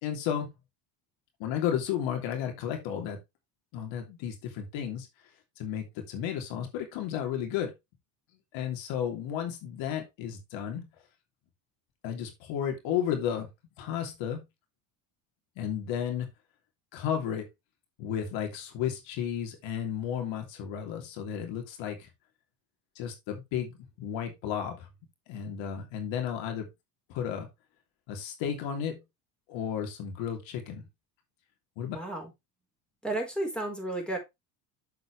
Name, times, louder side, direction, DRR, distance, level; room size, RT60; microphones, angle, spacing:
voice 1, 0.0-0.5 1.4-3.2 3.7-5.1 5.6-7.7 8.5-10.9 12.0-13.5 13.8-14.4 15.6-16.3 16.9-17.4 18.0-22.1 22.9-24.9 25.3-26.7 27.1-27.5 28.1-29.0 29.5-30.8 31.8-32.0, left 9 dB, 70° left, 3.0 m, -33 dB
voice 2, 31.9-32.3 33.0-34.2, right 2 dB, ahead, 4.5 m, -32 dB
7.7 x 7.2 x 3.4 m
supercardioid pair, 95°, 48 cm